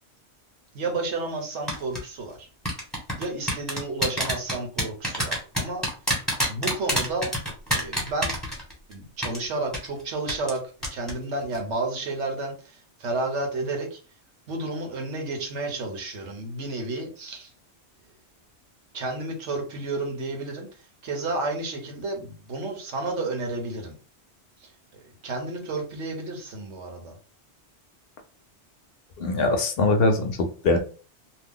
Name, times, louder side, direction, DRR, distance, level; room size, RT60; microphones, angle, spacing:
voice 1, 0.7-2.5 3.2-5.8 6.5-7.3 7.7-8.3 8.9-10.6 10.9-14.0 14.5-17.5 18.9-20.7 21.0-24.0 24.6-24.7 25.2-27.2, right 2 dB, 80° right, 3 dB, 1.2 m, -31 dB
sound 1, 1.7-2.0 2.6-8.9 9.2-9.4 9.7-9.9 10.3-10.6 10.8-11.1 11.4-11.6, equal, ahead, 1.1 m, -26 dB
voice 2, 29.2-30.8, left 2 dB, 65° left, 5 dB, 0.7 m, -22 dB
2.7 x 2.2 x 3.5 m, 0.38 s
omnidirectional pair, 1.2 m